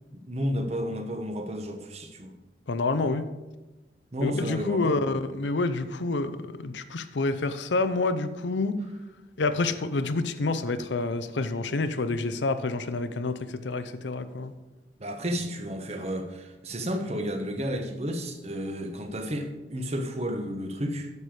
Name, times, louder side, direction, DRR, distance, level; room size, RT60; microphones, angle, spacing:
voice 1, 0.3-2.3 4.1-4.9 15.0-21.1, equal, 35° right, 6 dB, 1.0 m, -32 dB
voice 2, 2.7-3.3 4.2-8.8 9.4-14.5, left 3 dB, 90° left, 11 dB, 0.6 m, -28 dB
9.8 x 6.8 x 4.8 m, 1.1 s
head